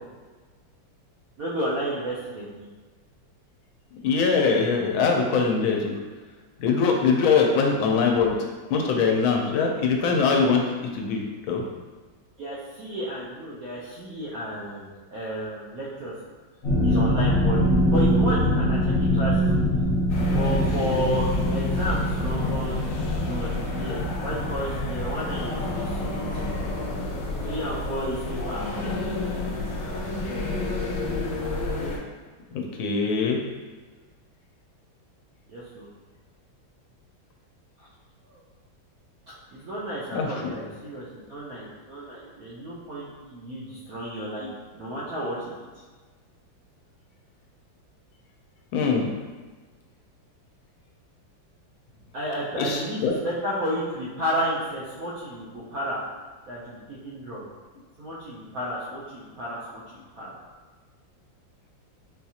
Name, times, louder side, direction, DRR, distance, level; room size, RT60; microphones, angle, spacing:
voice 1, 1.4-2.7 12.4-14.8 15.1-16.1 16.8-17.6 17.8-19.6 20.2-22.8 23.2-26.5 27.4-28.9 35.5-35.9 38.3-38.4 39.5-44.5 44.7-45.6 52.1-56.0 56.5-57.5 58.0-60.3, right 1 dB, 70° right, -7 dB, 0.8 m, -32 dB
voice 2, 4.0-5.9 6.6-8.3 8.7-10.6 10.9-11.6 32.5-33.4 40.1-40.5 44.4-44.5 48.7-49.1 52.6-53.2, left 5 dB, 85° left, 1 dB, 1.4 m, -22 dB
sound 1, 16.6-27.3 27.6-28.0 28.4-28.5, equal, 45° left, 0.9 m, -24 dB
sound 2, 20.1-32.0, left 2 dB, 70° left, 1.2 m, -30 dB
4.3 x 2.4 x 2.7 m, 1.4 s
omnidirectional pair, 2.1 m